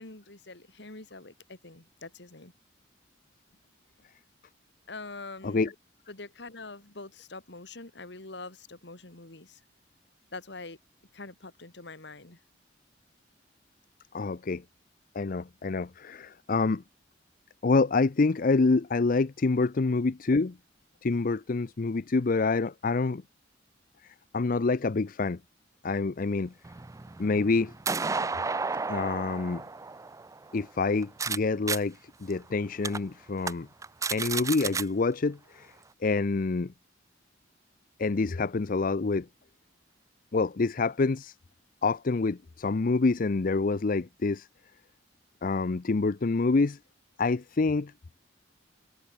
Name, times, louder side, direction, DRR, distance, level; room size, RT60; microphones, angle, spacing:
voice 1, 0.0-2.5 4.9-5.7 6.1-9.6 10.3-10.8 11.1-12.4, left 3 dB, 65° left, 2.6 m, -44 dB
voice 2, 14.1-14.6 15.2-16.8 17.6-20.6 21.0-23.2 24.3-25.4 25.8-26.5 27.2-27.7 28.9-29.6 30.5-33.7 34.1-35.7 36.0-36.7 38.0-39.3 40.3-41.3 41.8-44.5 45.4-46.8 47.2-47.9, left 3 dB, 50° left, 0.5 m, -27 dB
sound 1, 26.6-31.4 31.7-31.8 32.3-32.4 32.8-33.0 33.4-33.5 33.8-34.8, right 4 dB, 15° right, 0.4 m, -32 dB
head